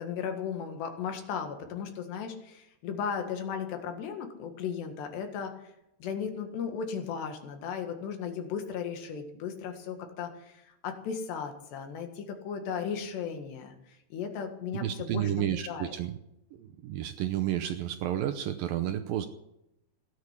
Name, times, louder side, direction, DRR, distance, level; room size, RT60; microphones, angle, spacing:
voice 1, 0.0-5.7 6.0-13.7 14.1-15.3 15.7-15.9, left 7 dB, 80° left, 5 dB, 3.9 m, -36 dB
voice 2, 14.7-16.1 16.5-19.3, right 11 dB, 80° right, 9 dB, 2.2 m, -31 dB
17.0 x 9.7 x 8.3 m, 0.86 s
omnidirectional pair, 4.8 m